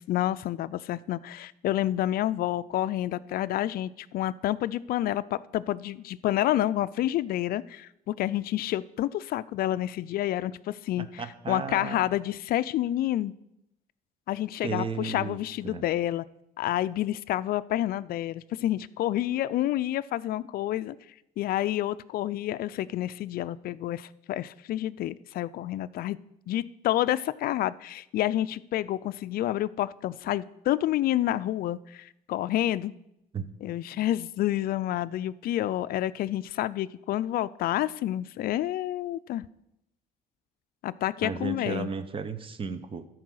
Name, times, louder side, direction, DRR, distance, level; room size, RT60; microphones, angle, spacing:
voice 1, 0.0-13.3 14.3-16.2 16.6-21.0 21.4-26.2 26.5-32.9 33.6-39.4 40.8-41.9, left 13 dB, 60° left, 16 dB, 0.4 m, -29 dB
voice 2, 11.0-12.0 14.6-15.4 15.6-15.8 33.3-33.5 41.2-43.1, right 5 dB, 30° right, 12 dB, 0.8 m, -34 dB
12.5 x 4.8 x 6.4 m, 0.81 s
cardioid pair, 110°, 17 cm